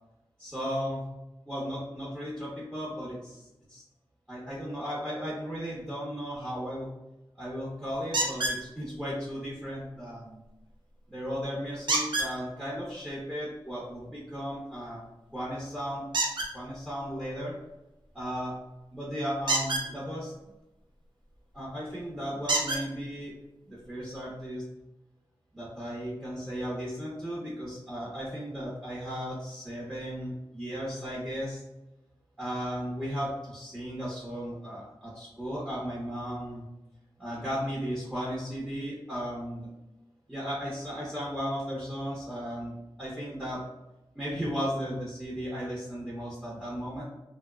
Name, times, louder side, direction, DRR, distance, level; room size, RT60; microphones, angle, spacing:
voice 1, 0.4-1.0 1.5-3.8 4.3-6.9 7.4-10.4 11.1-17.5 18.1-18.5 18.9-20.3 21.5-23.3 23.7-24.6 25.5-31.6 32.4-36.7 37.2-39.7 40.3-43.6 44.1-47.0, equal, 5° right, -7 dB, 0.8 m, -35 dB
sound 1, 8.1-8.6 11.9-12.3 16.1-16.5 19.4-19.9 21.5-21.6 22.5-22.8 23.8-23.9 24.4-24.5, right 2 dB, 60° right, 0.6 m, -27 dB
2.7 x 2.1 x 2.3 m, 0.97 s
cardioid pair, 60°, 9 cm